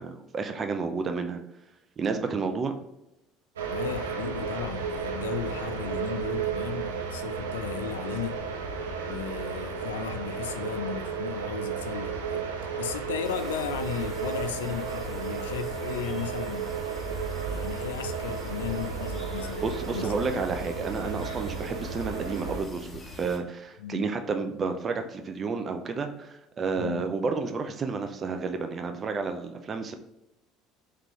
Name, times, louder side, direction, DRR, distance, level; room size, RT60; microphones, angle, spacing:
voice 1, 0.0-1.4 2.0-2.7 19.6-30.0, right 4 dB, 40° right, 6 dB, 0.5 m, -31 dB
sound 1, 3.6-22.6, right 5 dB, 90° right, 0.6 m, -33 dB
voice 2, 3.7-8.4 9.0-12.5 12.8-16.7 17.4-20.4 23.8-24.1 26.8-27.1, left 8 dB, 85° left, 8 dB, 0.3 m, -35 dB
sound 2, 13.2-23.4, left 3 dB, 20° left, 1.1 m, -45 dB
3.7 x 3.2 x 3.0 m, 0.88 s
hypercardioid pair, 70°, 0 cm